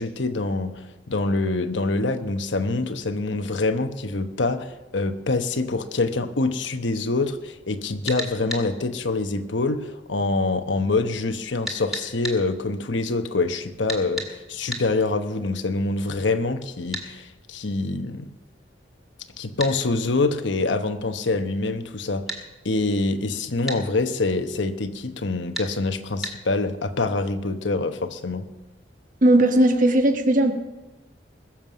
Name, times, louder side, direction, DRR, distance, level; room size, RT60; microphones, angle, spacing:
voice 1, 0.0-18.3 19.4-22.2 22.6-28.4, left 3 dB, 80° left, 9 dB, 1.0 m, -25 dB
sound 1, 8.1-8.7 11.7-12.4 13.9-14.3 14.7-14.9 16.9-17.1 19.6-19.8 22.3-22.4 23.7-23.8 25.5-25.7 26.2-26.4, right 1 dB, ahead, 1.9 m, -31 dB
voice 2, 29.2-30.5, right 1 dB, 45° right, 5 dB, 1.4 m, -17 dB
21.0 x 7.4 x 6.2 m, 1.1 s
head